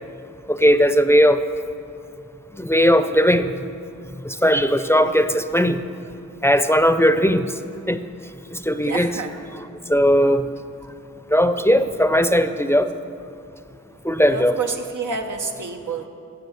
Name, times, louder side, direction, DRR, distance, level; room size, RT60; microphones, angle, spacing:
voice 1, 0.5-1.4 2.6-3.5 4.2-5.8 6.4-7.5 7.9-8.0 8.5-9.1 9.9-10.4 11.3-12.9 14.1-14.5, equal, 10° left, 10 dB, 0.5 m, -17 dB
voice 2, 4.8-5.4 8.8-9.4 14.2-16.1, right 4 dB, 90° right, 3 dB, 1.0 m, -29 dB
12.0 x 7.2 x 7.9 m, 2.6 s
cardioid pair, 50°, 30 cm